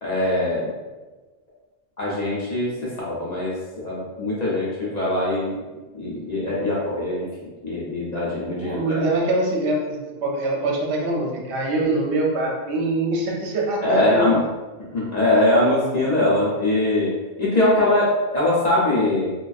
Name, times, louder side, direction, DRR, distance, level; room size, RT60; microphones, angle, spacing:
voice 1, 0.0-0.7 2.0-5.6 5.9-7.3 7.6-9.1 13.8-14.4 14.9-17.1 17.4-19.3, left 1 dB, 50° left, -7 dB, 0.5 m, -22 dB
voice 2, 8.6-14.3, right 2 dB, 75° right, -1 dB, 0.8 m, -23 dB
2.4 x 2.2 x 2.3 m, 1.2 s
omnidirectional pair, 1.1 m